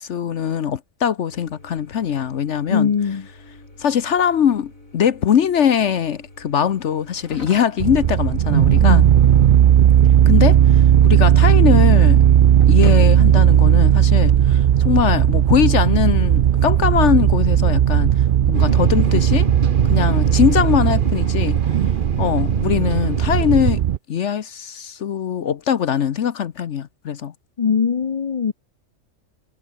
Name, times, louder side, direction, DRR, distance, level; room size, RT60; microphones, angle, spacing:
voice 1, 0.0-2.9 3.8-9.1 10.3-12.2 12.7-18.1 18.5-19.5 19.9-21.6 22.2-23.8 24.1-27.3, left 8 dB, 65° left, 1.1 m, -21 dB
sound 1, 1.3-14.5, left 2 dB, 90° left, 7.1 m, -42 dB
voice 2, 2.7-3.2 8.8-9.0 27.6-28.5, left 6 dB, 40° left, 0.5 m, -20 dB
sound 2, 7.8-24.0, right 10 dB, 60° right, 0.5 m, -15 dB
sound 3, 18.5-23.7, right 4 dB, 40° right, 1.9 m, -26 dB
omnidirectional pair, 1.4 m